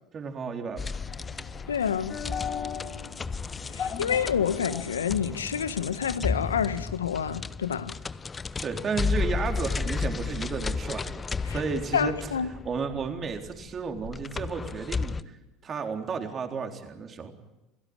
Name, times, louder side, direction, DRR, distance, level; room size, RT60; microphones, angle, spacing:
voice 1, 0.1-1.0 8.6-12.3 12.6-15.4 15.6-17.3, right 5 dB, 35° right, 3.9 m, -33 dB
sound 1, 0.8-15.2, left 4 dB, 25° left, 0.8 m, -33 dB
sound 2, 0.9-6.6, left 7 dB, 40° left, 6.5 m, -39 dB
voice 2, 1.7-2.2 3.7-7.9 11.4-11.6 11.9-12.5, left 8 dB, 85° left, 1.1 m, -28 dB
29.0 x 17.0 x 9.0 m
hypercardioid pair, 70°, 0 cm